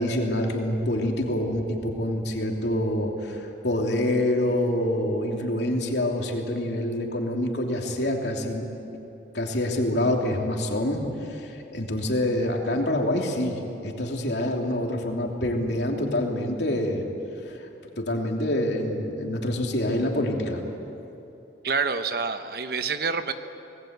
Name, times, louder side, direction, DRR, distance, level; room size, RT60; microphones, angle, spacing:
voice 1, 0.0-8.6 9.3-11.0 11.3-17.0 17.5-17.6 18.0-20.6, left 1 dB, 70° left, 1 dB, 2.9 m, -26 dB
voice 2, 21.6-23.3, right 5 dB, 55° right, 9 dB, 1.0 m, -27 dB
25.5 x 19.5 x 8.1 m, 3.0 s
head